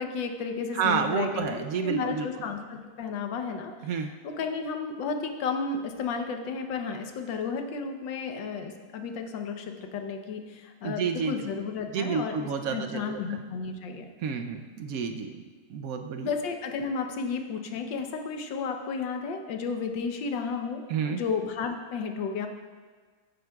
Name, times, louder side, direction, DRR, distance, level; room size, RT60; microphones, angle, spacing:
voice 1, 0.0-3.7 4.2-12.4 12.7-14.1 16.2-22.5, left 5 dB, 75° left, 5 dB, 1.5 m, -33 dB
voice 2, 0.7-2.3 3.8-4.1 10.8-11.5 11.9-13.4 14.2-15.4 15.7-16.3 20.9-21.2, right 6 dB, 75° right, 6 dB, 0.8 m, -30 dB
15.5 x 9.2 x 2.3 m, 1.5 s
omnidirectional pair, 2.1 m